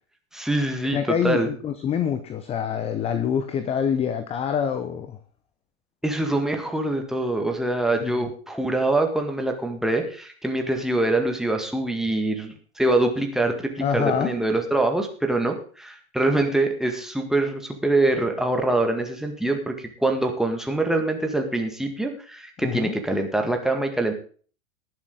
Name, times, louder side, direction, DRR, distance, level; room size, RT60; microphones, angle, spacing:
voice 1, 0.3-1.5 6.0-24.1, right 2 dB, ahead, 3 dB, 1.9 m, -24 dB
voice 2, 0.9-5.2 8.0-8.3 13.8-14.3 22.6-22.9, left 8 dB, 15° left, 11 dB, 0.8 m, -26 dB
19.0 x 7.4 x 3.9 m, 0.42 s
figure-of-eight pair, 100°, 41 cm